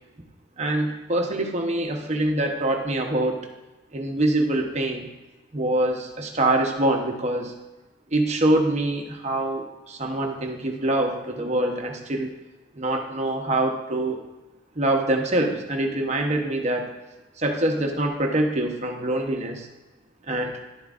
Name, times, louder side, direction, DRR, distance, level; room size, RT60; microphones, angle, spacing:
voice 1, 0.6-3.5 3.9-5.1 5.5-7.5 8.1-12.3 12.8-14.2 14.7-16.9 17.4-19.7 20.3-20.5, right 1 dB, 35° right, 3 dB, 0.9 m, -24 dB
11.0 x 7.7 x 2.5 m, 1.1 s
head